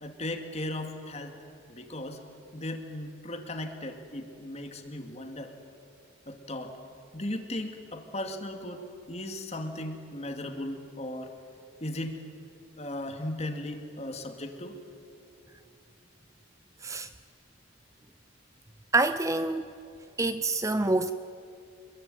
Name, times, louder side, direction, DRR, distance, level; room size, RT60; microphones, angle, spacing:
voice 1, 0.0-1.3 1.7-2.2 2.5-5.6 6.3-6.7 7.1-8.8 9.1-11.3 11.8-12.2 12.8-14.8, left 1 dB, 30° left, 6 dB, 2.5 m, -37 dB
voice 2, 18.9-19.7 20.2-21.1, right 2 dB, 15° right, 11 dB, 0.5 m, -26 dB
27.0 x 22.0 x 9.4 m, 2.6 s
head